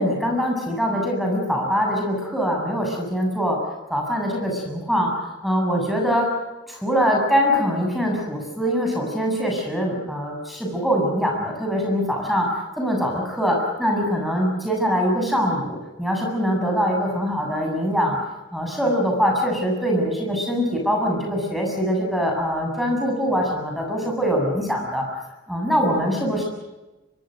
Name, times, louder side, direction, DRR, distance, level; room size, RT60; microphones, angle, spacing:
voice 1, 0.0-3.6 3.9-6.3 6.7-18.2 18.5-25.0 25.5-26.4, equal, ahead, 0 dB, 7.8 m, -23 dB
24.5 x 24.5 x 6.6 m, 1.1 s
head